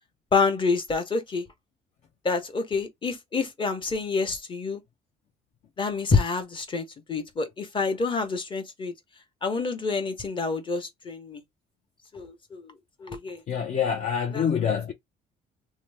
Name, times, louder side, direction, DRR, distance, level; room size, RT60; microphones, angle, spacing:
voice 1, 0.3-1.4 2.2-4.8 5.8-8.9 9.4-11.4 12.1-12.7 13.0-13.4, left 4 dB, 30° left, 1.0 m, -27 dB
voice 2, 13.5-14.9, left 7 dB, 45° left, 0.6 m, -26 dB
2.9 x 2.1 x 3.4 m
cardioid pair, 110°, 17 cm